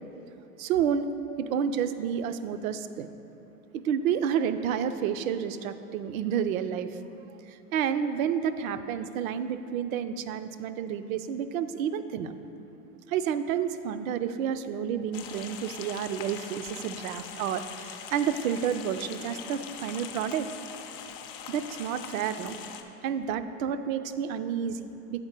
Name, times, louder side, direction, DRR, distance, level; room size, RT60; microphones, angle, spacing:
voice 1, 0.6-1.1 1.4-3.1 3.8-7.0 7.5-12.3 13.1-20.5 21.5-22.6 23.0-25.2, right 8 dB, 60° right, 11 dB, 0.5 m, -30 dB
sound 1, 15.1-22.8, left 8 dB, 35° left, 0.4 m, -42 dB
7.8 x 4.3 x 5.1 m, 2.9 s
hypercardioid pair, 120°, 47 cm